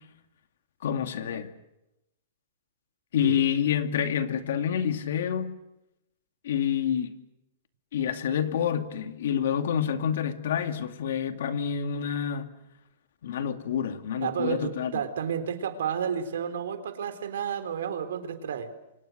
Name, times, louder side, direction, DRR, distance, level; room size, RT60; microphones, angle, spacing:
voice 1, 0.8-1.5 3.1-5.5 6.4-7.2 7.9-12.5 13.2-14.9, left 8 dB, 70° left, 2.3 m, -28 dB
voice 2, 14.2-18.7, right 8 dB, 80° right, 3.7 m, -31 dB
29.5 x 25.0 x 6.6 m
hypercardioid pair, 165°, 0 cm